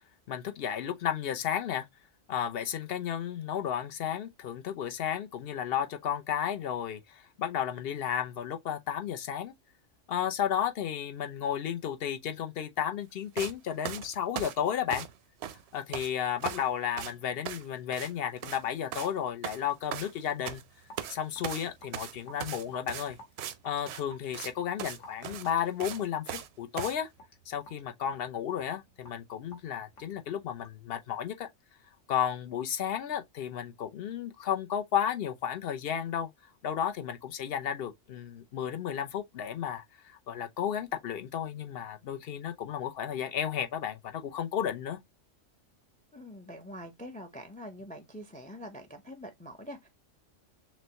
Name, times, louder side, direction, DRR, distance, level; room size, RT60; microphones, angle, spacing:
voice 1, 0.3-1.9 2.3-9.5 10.1-15.0 15.7-20.6 21.1-23.2 23.6-27.1 27.5-31.5 32.1-36.3 36.6-45.0, left 9 dB, 60° left, 0.8 m, -33 dB
sound 1, 13.4-13.5 13.8-15.2 15.4-16.1 16.4-16.7 17.0-17.1 17.5-17.7 17.9-18.1 18.4-18.6 18.9-19.1 19.4-20.6 21.0-21.2 21.4-23.6 23.9-24.0 24.3-24.5 24.8-25.0 25.2-26.5 26.8-27.0, right 10 dB, 65° right, 0.7 m, -38 dB
Raindrop / Drip, 20.4-30.9, right 1 dB, 75° left, 1.7 m, -54 dB
voice 2, 46.1-49.9, equal, 10° left, 0.4 m, -44 dB
6.1 x 2.1 x 2.8 m
omnidirectional pair, 1.3 m